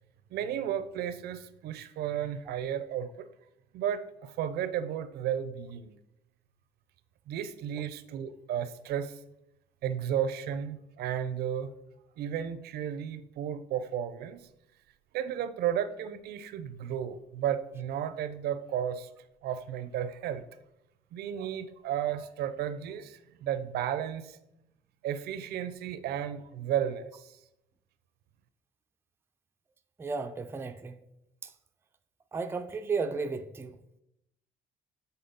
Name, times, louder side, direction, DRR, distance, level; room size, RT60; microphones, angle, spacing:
voice 1, 0.3-3.1 3.7-4.0 4.4-5.9 7.3-9.1 9.8-11.7 12.2-14.4 15.1-19.1 19.4-20.4 21.1-23.1 23.4-24.2 25.0-27.1, right 9 dB, 70° right, 0.5 m, -33 dB
voice 2, 30.0-31.0 32.3-33.8, right 4 dB, 15° right, 0.4 m, -33 dB
7.0 x 4.0 x 3.9 m
cardioid pair, 110°, 17 cm